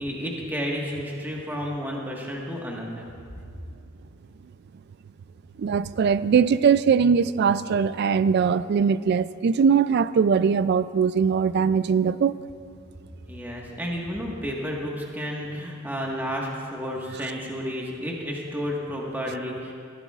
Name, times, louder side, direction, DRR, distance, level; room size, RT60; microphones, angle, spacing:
voice 1, 0.0-3.1 13.3-19.7, equal, 10° right, -2 dB, 1.5 m, -31 dB
voice 2, 5.6-12.4, right 6 dB, 50° right, 16 dB, 0.3 m, -21 dB
20.0 x 14.5 x 2.4 m, 2.3 s
head